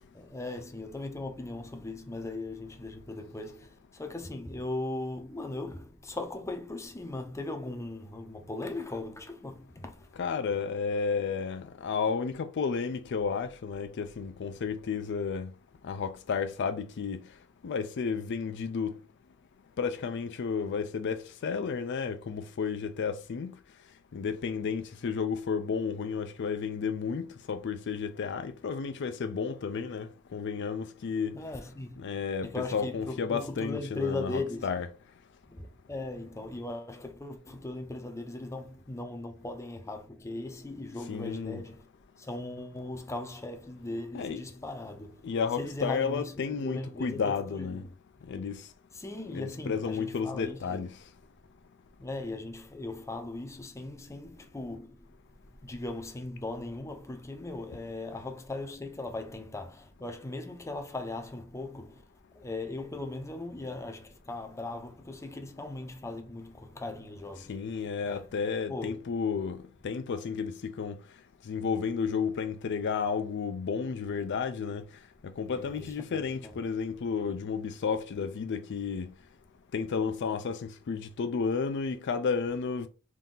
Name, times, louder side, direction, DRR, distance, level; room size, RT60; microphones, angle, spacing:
voice 1, 0.1-10.1 31.3-32.0 32.4-34.7 35.5-41.9 42.2-45.2 45.6-47.9 48.9-50.9 52.0-55.1 55.6-62.0 62.3-68.4 68.7-69.1 75.5-76.6, left 2 dB, 15° left, 0.6 m, -38 dB
voice 2, 10.2-15.5 15.8-17.2 17.6-19.0 19.8-23.5 24.1-31.4 32.0-34.9 41.1-41.6 44.1-44.4 45.2-47.8 48.3-48.6 49.3-50.9 67.5-71.0 71.5-74.8 75.4-79.1 79.7-82.9, left 5 dB, 55° left, 0.4 m, -32 dB
3.7 x 2.7 x 3.8 m
head